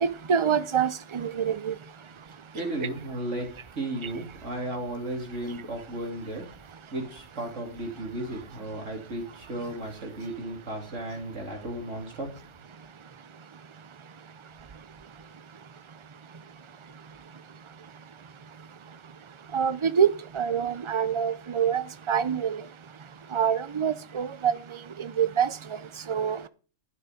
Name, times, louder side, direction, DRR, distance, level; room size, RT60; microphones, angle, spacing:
voice 1, 0.0-1.7 19.5-20.1 20.3-22.6 23.3-24.5 25.0-25.5 26.1-26.5, right 7 dB, 30° right, 0.6 m, -25 dB
voice 2, 2.5-6.5 6.9-12.3, right 1 dB, 70° right, 3.5 m, -34 dB
11.5 x 9.8 x 5.1 m
omnidirectional pair, 1.3 m